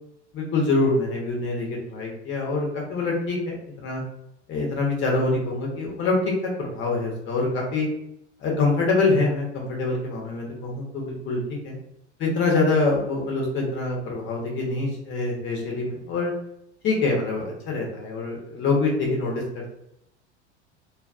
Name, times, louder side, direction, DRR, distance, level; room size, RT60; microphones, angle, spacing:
voice 1, 0.3-4.0 4.5-6.2 6.6-7.9 8.4-11.4 11.6-11.8 12.2-16.3 16.8-19.8, left 3 dB, 30° left, -1 dB, 1.0 m, -25 dB
2.7 x 2.3 x 2.4 m, 0.79 s
figure-of-eight pair, 80°, 35 cm